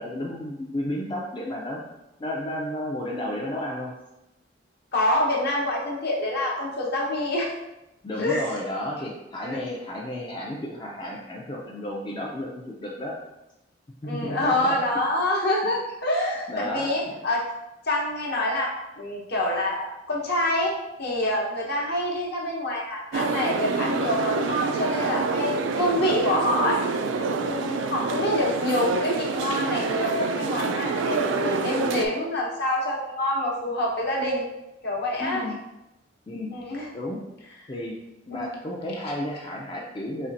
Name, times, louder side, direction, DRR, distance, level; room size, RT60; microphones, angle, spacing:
voice 1, 0.0-1.8 2.2-3.9 8.0-13.1 14.0-14.8 16.5-17.2 35.2-35.6 36.3-36.5 36.9-37.2 37.7-37.9 38.3-40.3, left 1 dB, 25° left, -3 dB, 0.4 m, -32 dB
voice 2, 4.9-7.5 8.2-8.4 9.4-9.6 14.0-17.4 17.8-20.7 21.0-26.8 27.4-34.4 34.8-35.5 36.5-36.9 38.3-38.5, left 1 dB, 60° left, -2 dB, 0.9 m, -26 dB
sound 1, 23.1-32.1, right 4 dB, 85° right, 0.3 m, -27 dB
4.3 x 3.2 x 2.5 m, 0.93 s
head